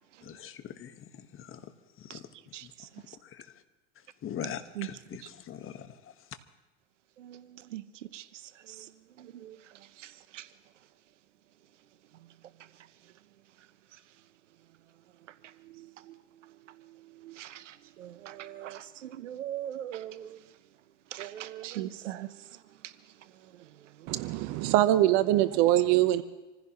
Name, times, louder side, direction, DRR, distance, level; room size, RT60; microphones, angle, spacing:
voice 1, 0.2-1.7 2.0-2.3 2.6-2.7 3.2-3.6 4.2-6.3, left 9 dB, 35° left, 1.4 m, -42 dB
voice 2, 9.2-9.6 10.0-10.5 15.8-15.9 17.2-20.4 21.1-22.3, right 12 dB, 85° right, 0.8 m, -40 dB
voice 3, 24.1-26.2, right 14 dB, 55° right, 0.9 m, -23 dB
27.0 x 15.5 x 3.0 m
hypercardioid pair, 90°, 36 cm